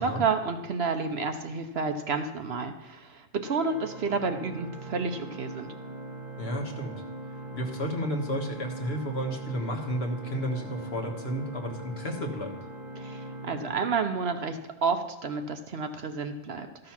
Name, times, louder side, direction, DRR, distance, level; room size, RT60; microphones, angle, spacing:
voice 1, 0.0-5.7 13.0-16.9, right 4 dB, 60° right, 7 dB, 0.9 m, -30 dB
Organ, 3.4-14.6, right 1 dB, 35° right, 1.1 m, -41 dB
voice 2, 6.4-6.9 7.5-12.5, equal, 55° left, 2 dB, 1.6 m, -32 dB
13.5 x 6.4 x 5.9 m, 1.1 s
omnidirectional pair, 1.3 m